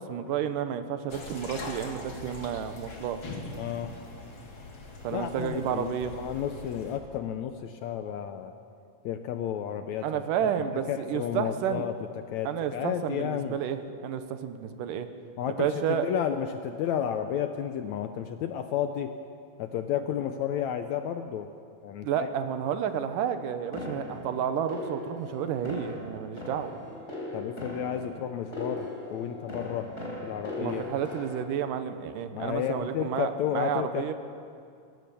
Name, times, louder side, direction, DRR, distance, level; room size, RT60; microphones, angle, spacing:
voice 1, 0.0-3.2 5.0-6.1 10.0-11.9 12.4-15.1 15.5-16.1 22.0-26.8 30.6-34.1, right 8 dB, 80° right, 9 dB, 2.5 m, -31 dB
sound 1, 1.1-7.0, left 2 dB, 40° left, 2.7 m, -42 dB
voice 2, 3.6-3.9 5.1-8.5 9.0-10.5 10.9-13.6 15.4-19.1 19.6-21.5 21.8-22.3 27.3-29.9 30.2-30.8 32.3-34.1, left 9 dB, 75° left, 7 dB, 1.7 m, -32 dB
sound 2, 23.7-31.4, left 1 dB, 20° left, 3.9 m, -39 dB
23.0 x 17.5 x 7.0 m, 2.4 s
omnidirectional pair, 3.9 m